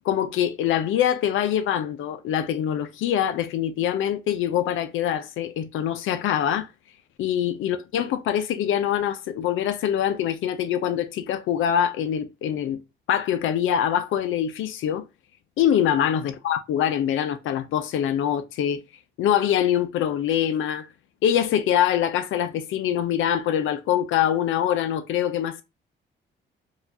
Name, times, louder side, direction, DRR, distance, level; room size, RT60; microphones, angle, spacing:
voice 1, 0.0-6.7 7.2-12.8 13.1-15.0 15.6-18.8 19.2-20.9 21.2-25.6, left 10 dB, 80° left, 0.6 m, -24 dB
4.6 x 2.4 x 2.7 m
cardioid pair, 90°, 20 cm